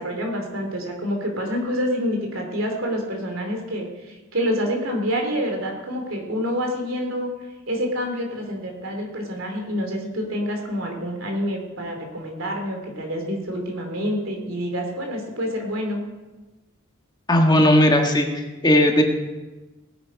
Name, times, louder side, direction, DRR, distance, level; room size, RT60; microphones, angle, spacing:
voice 1, 0.0-3.9 4.3-7.3 7.7-16.0, equal, 80° right, 2 dB, 2.9 m, -27 dB
voice 2, 17.3-19.0, left 1 dB, 20° left, 2 dB, 1.5 m, -17 dB
18.0 x 8.5 x 5.2 m, 1.2 s
head